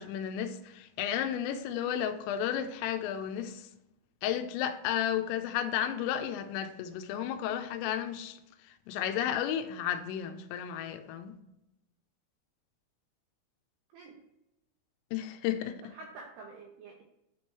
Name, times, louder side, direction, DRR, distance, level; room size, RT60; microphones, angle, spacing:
voice 1, 0.0-3.7 4.2-8.4 8.6-11.3 15.1-15.8, left 10 dB, 85° left, 3.2 m, -33 dB
voice 2, 15.8-17.0, right 3 dB, 85° right, 2.4 m, -48 dB
11.5 x 4.5 x 3.1 m
omnidirectional pair, 5.9 m